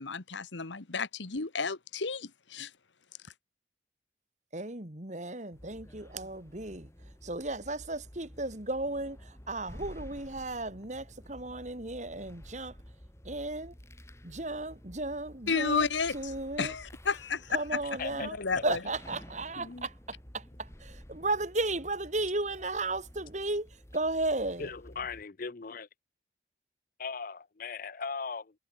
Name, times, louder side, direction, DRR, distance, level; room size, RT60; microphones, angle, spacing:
voice 1, 0.0-2.7 15.5-16.3 16.6-17.8 18.1-18.8, left 4 dB, 85° left, 1.4 m, -32 dB
voice 2, 4.5-6.9 7.2-12.8 13.2-13.7 14.2-15.9 16.1-16.7 17.5-18.4 18.6-24.7, right 2 dB, 40° right, 2.7 m, -35 dB
sound 1, 5.5-25.2, equal, 15° left, 2.1 m, -51 dB
voice 3, 19.6-19.9 24.6-25.9 27.0-28.5, left 5 dB, 50° left, 0.7 m, -38 dB
head